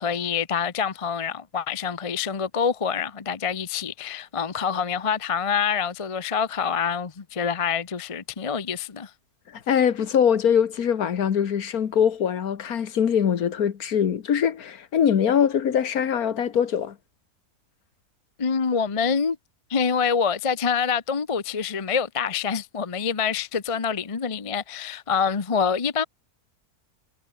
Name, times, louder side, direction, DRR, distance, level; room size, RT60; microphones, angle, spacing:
voice 1, 0.0-9.1 18.4-19.4 19.7-26.0, left 6 dB, 30° left, 0.8 m, -26 dB
voice 2, 9.5-17.0, left 8 dB, 75° left, 1.8 m, -22 dB
omnidirectional pair, 1.6 m